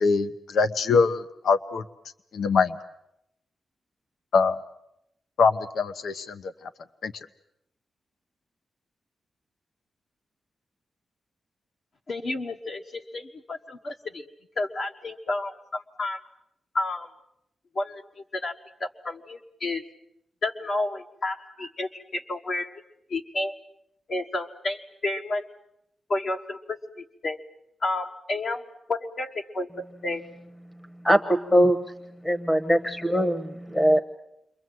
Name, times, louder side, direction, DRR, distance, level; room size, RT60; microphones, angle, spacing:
voice 1, 0.0-1.8 2.3-2.7 4.3-4.6 5.4-6.4 7.0-7.1, left 4 dB, 75° left, 11 dB, 1.0 m, -23 dB
voice 2, 12.1-14.2 14.6-16.2 16.7-17.1 17.7-18.0 18.3-18.5 18.8-19.8 20.4-22.7 23.1-23.5 24.1-25.4 26.1-27.4 27.8-28.6 28.9-30.2, left 2 dB, 45° left, 3 dB, 1.3 m, -31 dB
voice 3, 32.2-33.4 33.7-34.0, equal, 10° left, 8 dB, 1.1 m, -20 dB
29.5 x 23.0 x 7.8 m, 0.81 s
wide cardioid pair, 175°, 0 cm